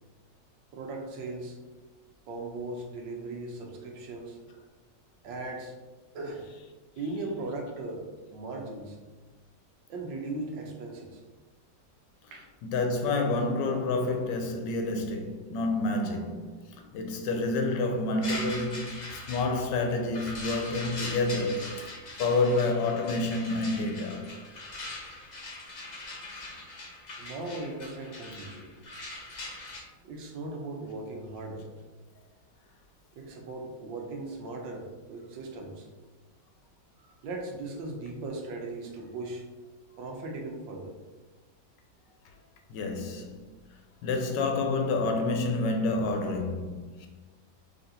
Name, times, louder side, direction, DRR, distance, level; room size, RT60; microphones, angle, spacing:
voice 1, 0.7-1.6 2.3-4.4 5.2-5.7 6.1-6.4 7.0-8.1 8.3-9.1 9.9-11.2 12.3-12.5 27.2-28.7 30.0-31.6 33.1-35.9 37.0-39.4 40.0-41.0, right 2 dB, 85° right, 1.4 m, -38 dB
voice 2, 12.6-21.9 22.2-24.3 42.7-43.5 44.0-47.1, left 2 dB, 80° left, 1.2 m, -29 dB
sound 1, 18.2-29.8, left 2 dB, 60° left, 0.4 m, -41 dB
4.1 x 3.3 x 2.7 m
omnidirectional pair, 1.9 m